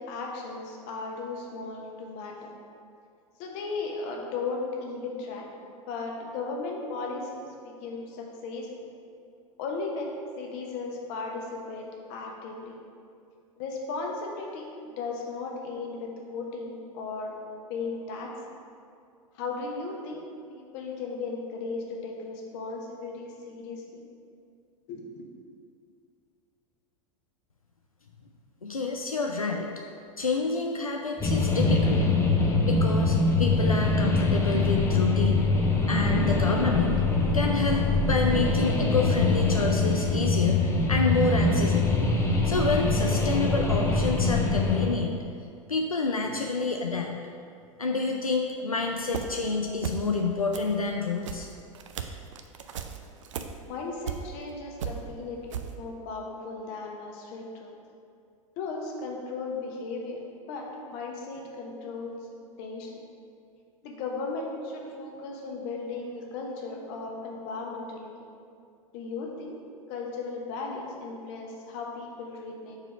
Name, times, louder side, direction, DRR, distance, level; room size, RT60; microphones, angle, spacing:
voice 1, 0.0-2.5 3.4-5.5 5.9-8.7 9.6-12.7 13.6-17.4 17.7-18.4 19.3-20.2 20.5-24.0 24.9-25.2 53.7-57.7 58.6-63.0 63.8-68.3 68.9-69.6 69.9-72.8, left 3 dB, 45° left, 0 dB, 1.1 m, -36 dB
voice 2, 28.6-29.7 30.2-32.0 32.6-35.5 35.9-37.0 37.3-42.0 42.4-45.2 45.7-47.1 47.8-51.5, left 3 dB, 90° left, 2 dB, 0.4 m, -28 dB
sound 1, 31.2-44.9, left 3 dB, 15° left, 0.8 m, -24 dB
sound 2, 48.9-49.5 49.8-50.2 50.5-54.5 54.8-55.7, right 7 dB, 65° right, 0.5 m, -36 dB
4.7 x 4.6 x 5.9 m, 2.4 s
figure-of-eight pair, 85°, 17 cm